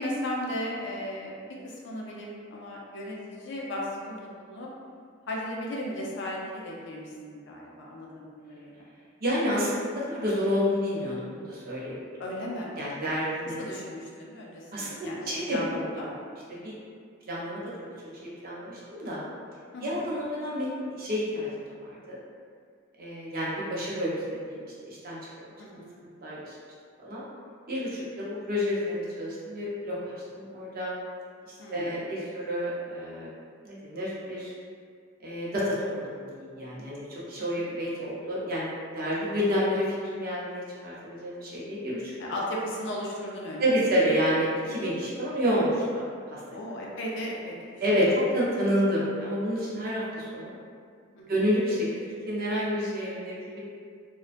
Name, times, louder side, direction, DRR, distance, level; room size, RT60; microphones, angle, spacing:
voice 1, 0.0-1.3 1.6-4.7 5.3-8.9 12.2-12.7 13.6-16.1 19.7-20.1 25.6-25.9 31.6-32.0 37.4-37.8 42.2-43.6 44.8-44.9 46.5-48.2 51.2-51.5, left 1 dB, 60° left, -3 dB, 0.4 m, -36 dB
voice 2, 9.2-12.0 12.8-13.6 14.7-15.9 16.6-16.7 17.3-17.6 18.2-19.2 19.8-21.5 21.8-22.2 23.0-25.2 26.2-26.5 27.0-27.2 27.7-30.9 31.7-33.3 33.6-34.5 35.2-35.8 36.2-38.7 38.9-42.1 43.6-46.0 46.3-46.4 47.8-48.1 48.3-50.5 51.3-51.9 52.3-53.6, equal, 45° right, -7 dB, 0.6 m, -29 dB
2.4 x 2.1 x 2.4 m, 2.1 s
head